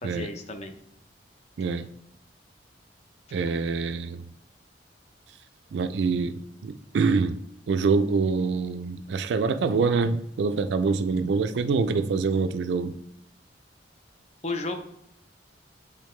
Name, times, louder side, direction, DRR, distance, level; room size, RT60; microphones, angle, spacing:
voice 1, 0.0-0.7 14.4-14.7, left 2 dB, 40° left, 0.7 m, -33 dB
voice 2, 1.6-1.9 3.3-4.2 5.7-7.4 7.7-12.9, right 4 dB, 75° right, 0.3 m, -25 dB
8.1 x 3.7 x 3.2 m
head